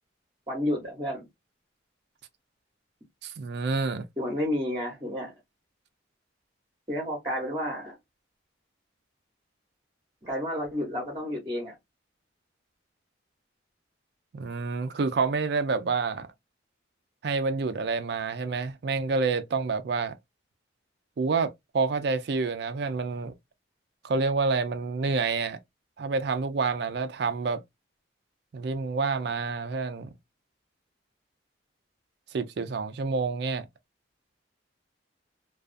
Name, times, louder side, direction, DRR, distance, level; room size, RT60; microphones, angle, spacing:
voice 1, 0.5-1.3 4.2-5.3 6.9-8.0 10.2-11.7, left 1 dB, 25° right, 0.8 m, -31 dB
voice 2, 3.2-4.1 14.3-16.3 17.2-20.1 21.2-23.3 24.0-25.6 26.0-27.6 28.5-30.1 32.3-33.7, right 4 dB, 55° right, 0.4 m, -28 dB
2.3 x 2.3 x 2.4 m
head